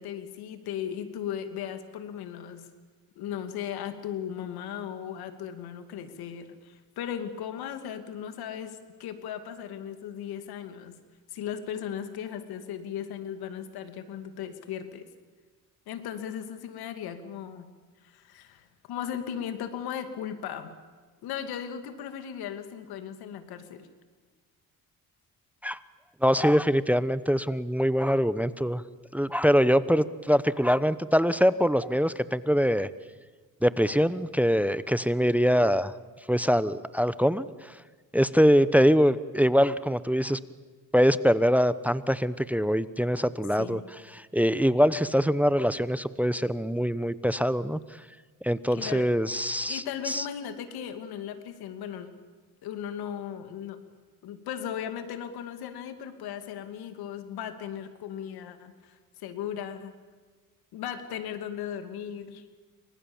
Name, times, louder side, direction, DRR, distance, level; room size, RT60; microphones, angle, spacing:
voice 1, 0.0-2.7 3.2-11.0 11.3-15.1 15.9-17.7 18.0-20.7 21.2-23.9 43.6-43.8 48.7-49.1 49.7-52.1 52.6-53.8 54.2-59.9 60.7-62.4, left 9 dB, 85° left, 9 dB, 2.6 m, -37 dB
voice 2, 26.2-28.8 29.1-32.9 33.6-35.9 36.3-37.5 38.1-40.4 40.9-43.8 44.1-47.8 48.4-50.3, equal, 5° right, 15 dB, 0.9 m, -23 dB
29.0 x 25.0 x 7.2 m, 1.4 s
cardioid pair, 90°, 37 cm